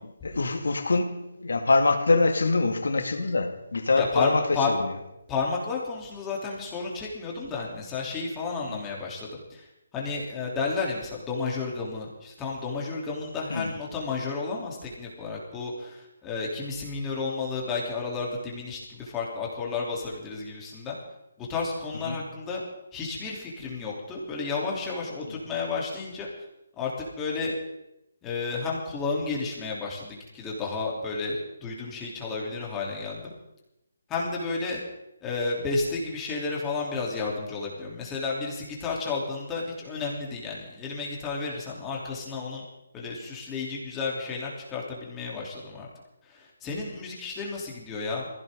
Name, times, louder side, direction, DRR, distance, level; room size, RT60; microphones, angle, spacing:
voice 1, 0.2-4.9 8.7-8.9 13.5-13.8 22.0-22.2 25.3-25.4, left 3 dB, 85° left, 5 dB, 2.2 m, -25 dB
voice 2, 3.9-4.7 5.3-9.7 9.9-20.9 21.4-22.6 22.9-26.3 26.8-27.5 28.2-33.3 34.1-34.8 35.2-42.6 42.9-45.9 46.3-48.3, left 4 dB, 15° left, -3 dB, 3.3 m, -32 dB
21.0 x 16.0 x 3.9 m, 0.88 s
hypercardioid pair, 165°, 0 cm